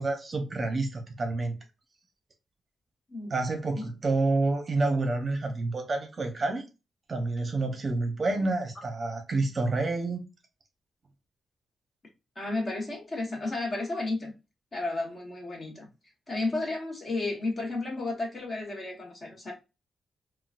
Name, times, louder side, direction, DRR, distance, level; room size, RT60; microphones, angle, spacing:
voice 1, 0.0-1.5 3.3-6.6 7.1-10.2, right 3 dB, 35° right, 0.7 m, -28 dB
voice 2, 12.4-14.3 14.7-15.9 16.3-19.5, left 2 dB, 35° left, 1.1 m, -32 dB
3.7 x 2.3 x 2.4 m
wide cardioid pair, 125°, 0 cm